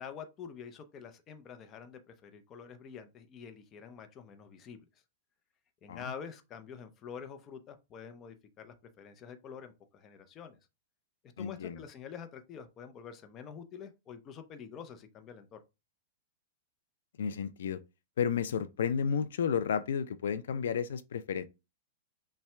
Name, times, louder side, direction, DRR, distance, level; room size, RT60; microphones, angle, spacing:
voice 1, 0.0-4.9 5.8-10.6 11.4-15.6, left 7 dB, 25° left, 0.6 m, -47 dB
voice 2, 11.4-11.8 17.2-17.8 18.2-21.5, left 7 dB, 85° left, 0.4 m, -32 dB
5.7 x 2.2 x 3.3 m
supercardioid pair, 150°, 0 cm